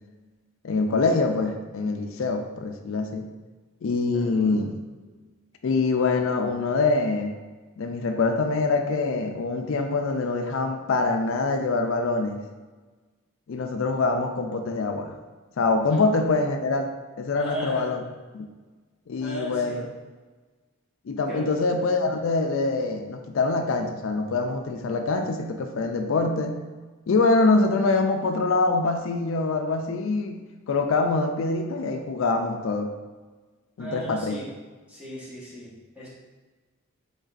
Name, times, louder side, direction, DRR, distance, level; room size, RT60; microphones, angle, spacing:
voice 1, 0.6-3.3 3.8-4.8 5.6-7.4 7.8-12.4 13.5-15.2 15.6-18.0 18.3-18.5 19.1-19.9 21.1-26.6 27.1-30.4 30.7-32.9 33.8-34.4, left 3 dB, 70° left, 5 dB, 0.4 m, -24 dB
voice 2, 4.1-4.8 15.9-16.0 17.3-17.9 19.2-19.8 21.3-21.5 22.1-22.2 33.8-34.5 34.9-36.1, equal, 5° right, -8 dB, 1.2 m, -37 dB
5.1 x 3.9 x 2.5 m, 1.3 s
head